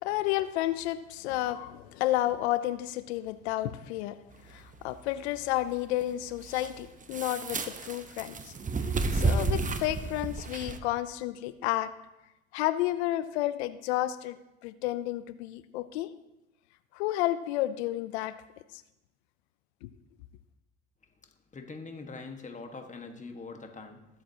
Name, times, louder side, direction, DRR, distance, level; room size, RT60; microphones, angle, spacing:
voice 1, 0.0-4.2 4.5-8.5 9.1-11.9 12.5-16.1 16.9-18.4 19.8-19.9, left 15 dB, 85° left, 14 dB, 0.6 m, -31 dB
sound 1, 4.3-10.8, right 3 dB, 25° right, 1.0 m, -32 dB
voice 2, 21.5-24.1, left 4 dB, 25° left, 4 dB, 1.5 m, -43 dB
20.5 x 7.4 x 2.8 m, 0.93 s
supercardioid pair, 75°, 32 cm